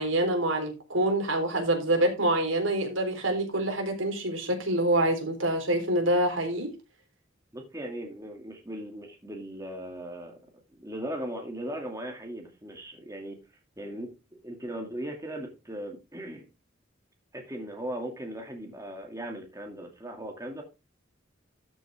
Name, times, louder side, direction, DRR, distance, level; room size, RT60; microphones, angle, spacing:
voice 1, 0.0-6.7, right 1 dB, 90° right, 3 dB, 3.8 m, -26 dB
voice 2, 7.5-10.4 10.7-13.4 13.8-16.5 17.3-20.6, right 1 dB, 15° right, 2 dB, 2.3 m, -38 dB
13.0 x 7.0 x 3.5 m, 0.27 s
head